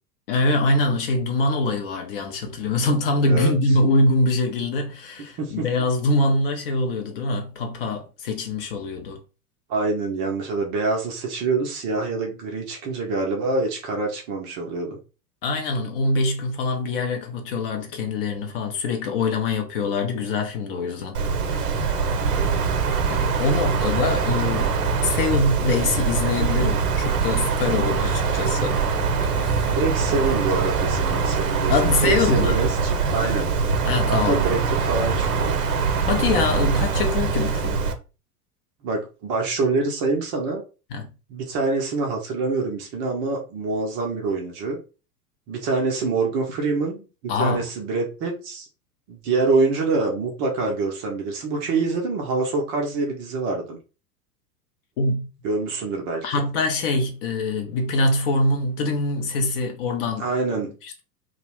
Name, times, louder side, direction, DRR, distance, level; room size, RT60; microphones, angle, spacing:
voice 1, 0.3-9.2 15.4-22.0 23.1-28.8 29.2-29.8 30.1-30.2 31.7-32.6 33.8-34.4 36.1-37.8 40.9-41.1 47.3-47.7 55.0-55.3 56.2-60.3 60.8-61.0, left 2 dB, 40° left, 0.5 m, -24 dB
voice 2, 9.7-15.0 22.3-22.8 29.6-31.7 32.0-33.5 34.1-35.5 38.8-40.6 41.3-44.8 45.5-48.7 49.1-53.8 55.4-56.4 60.2-60.7, right 3 dB, 25° right, 0.5 m, -25 dB
Wind, 21.1-37.9, right 5 dB, 65° right, 0.7 m, -23 dB
2.3 x 2.1 x 3.0 m
figure-of-eight pair, 85°, 47 cm